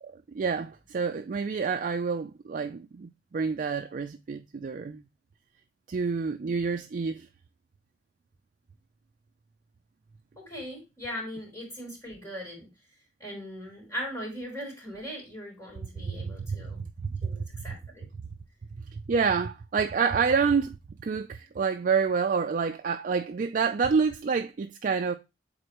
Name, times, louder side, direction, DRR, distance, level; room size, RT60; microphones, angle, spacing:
voice 1, 0.0-5.0 5.9-7.3 16.2-16.6 17.0-17.3 19.1-20.8 21.0-25.1, right 5 dB, 45° right, 0.4 m, -28 dB
voice 2, 10.4-12.7 13.2-16.8 17.2-18.1, equal, 15° left, 4.0 m, -39 dB
7.9 x 4.3 x 2.9 m
head